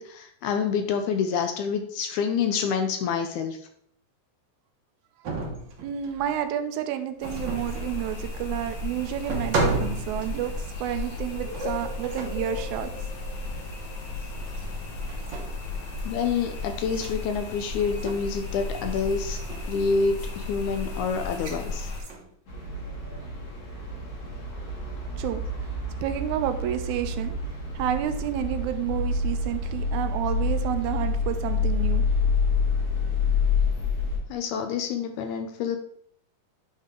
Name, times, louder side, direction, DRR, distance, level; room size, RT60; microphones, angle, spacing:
voice 1, 0.0-3.6 16.1-19.4 19.7-21.9 34.3-35.8, left 6 dB, 80° left, 6 dB, 1.9 m, -27 dB
sound 1, 5.2-6.4 7.2-8.0 8.7-8.8 9.2-10.7 11.5-12.5 13.5-13.7 14.4-14.8 15.1-15.7 16.8-17.2 17.8-18.5 18.9-19.1 19.3-19.7 21.3-21.6 21.9-22.3, right 2 dB, 60° right, 1.2 m, -33 dB
voice 2, 5.8-10.5 10.8-12.9 25.2-25.4 26.0-27.4 27.8-32.0, right 11 dB, 80° right, 9 dB, 1.9 m, -30 dB
sound 2, 7.2-22.0, left 2 dB, 55° left, 2.0 m, -34 dB
sound 3, 22.5-34.2, left 4 dB, 40° left, 1.6 m, -27 dB
9.4 x 3.6 x 3.7 m, 0.65 s
omnidirectional pair, 3.7 m